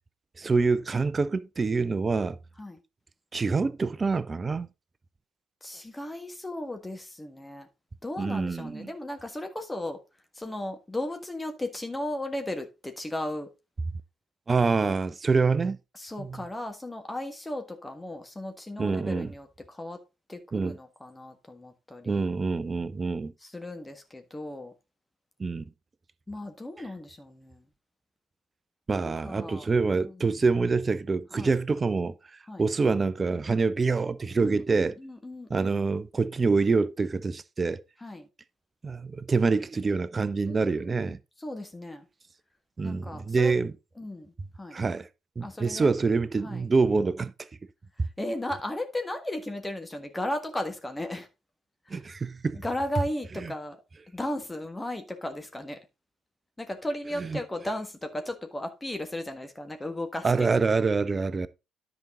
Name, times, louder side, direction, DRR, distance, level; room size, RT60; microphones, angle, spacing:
voice 1, 0.4-2.4 3.3-4.7 8.2-8.9 14.5-15.8 16.2-16.4 18.8-19.3 20.5-20.8 22.1-23.3 25.4-25.6 28.9-32.1 32.6-35.0 35.5-37.8 38.8-41.2 42.8-43.7 44.7-45.1 45.4-47.3 48.0-48.1 51.9-52.6 53.4-53.5 57.2-57.4 60.2-61.5, right 4 dB, 35° right, 0.7 m, -26 dB
voice 2, 5.6-7.7 8.0-10.0 10.3-13.5 15.9-20.0 20.3-22.3 23.4-24.7 26.3-27.6 29.2-29.7 30.2-30.4 31.3-31.5 32.5-32.6 34.4-35.8 38.0-38.3 40.5-41.0 41.4-42.1 42.8-43.5 44.0-44.3 44.6-44.8 45.4-45.9 46.4-46.6 48.2-51.3 51.9-52.0 52.5-53.8 54.1-55.8 56.6-60.5, left 1 dB, 15° left, 1.6 m, -35 dB
10.5 x 5.4 x 3.8 m
hypercardioid pair, 50°, 0 cm